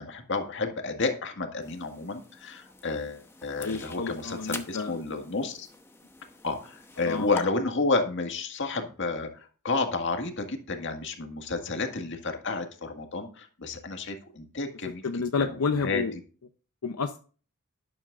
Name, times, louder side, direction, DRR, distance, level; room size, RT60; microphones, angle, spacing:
voice 1, 0.0-5.7 6.4-15.0 15.8-16.0, left 3 dB, 55° left, 5 dB, 1.8 m, -31 dB
sound 1, 1.6-7.4, left 3 dB, 10° left, 0.9 m, -45 dB
voice 2, 3.6-5.0 7.0-7.3 15.0-16.1 16.8-17.2, left 4 dB, 85° left, 7 dB, 0.7 m, -30 dB
12.0 x 11.0 x 2.5 m, 0.38 s
head